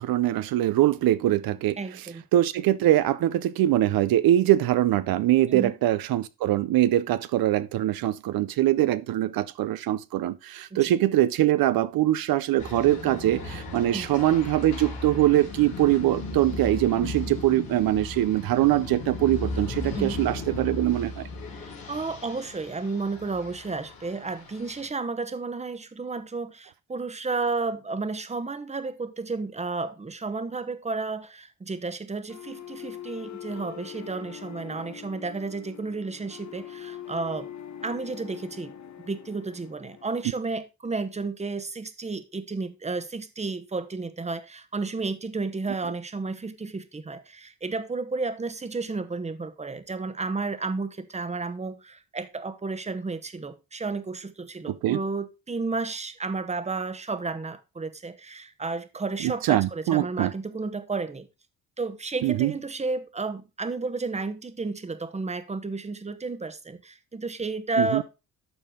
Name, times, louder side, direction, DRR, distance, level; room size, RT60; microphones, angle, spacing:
voice 1, 0.0-1.8 2.3-21.3 54.7-55.0 59.2-60.3 62.2-62.5 67.8-68.0, right 13 dB, 80° right, 0.6 m, -23 dB
voice 2, 1.8-2.2 5.5-5.7 10.7-10.9 13.9-14.1 19.9-20.2 21.6-37.5 37.8-38.7 39.0-61.3 61.8-68.0, right 3 dB, 20° right, 1.0 m, -32 dB
sound 1, 12.6-24.9, left 2 dB, 85° left, 3.4 m, -36 dB
sound 2, 32.3-40.3, left 9 dB, 50° left, 1.0 m, -43 dB
12.5 x 4.3 x 3.7 m
cardioid pair, 100°, 35 cm